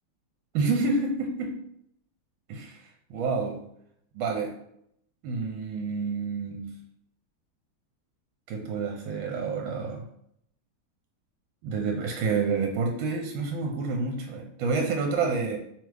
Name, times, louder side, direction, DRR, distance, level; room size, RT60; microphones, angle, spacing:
voice 1, 0.5-1.6 2.5-2.8 3.1-3.6 4.1-4.6 5.2-6.7 8.5-10.1 11.6-15.6, right 4 dB, 75° right, 1 dB, 1.3 m, -28 dB
3.3 x 3.3 x 3.5 m, 0.73 s
omnidirectional pair, 2.3 m